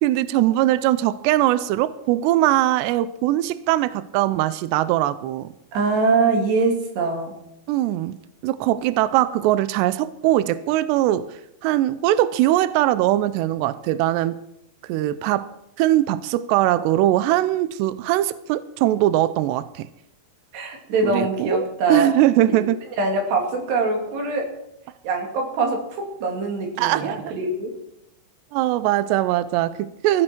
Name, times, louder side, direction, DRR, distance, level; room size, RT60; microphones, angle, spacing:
voice 1, 0.0-5.5 7.7-8.2 8.4-11.3 11.6-14.4 14.8-15.5 15.8-19.9 21.0-22.8 26.8-27.2 28.5-30.2, right 14 dB, 85° right, 14 dB, 2.4 m, -21 dB
voice 2, 5.7-7.4 20.5-22.1 23.0-24.5 25.0-27.8, right 3 dB, 60° right, 2 dB, 4.5 m, -23 dB
19.0 x 15.0 x 4.5 m, 0.83 s
omnidirectional pair, 5.7 m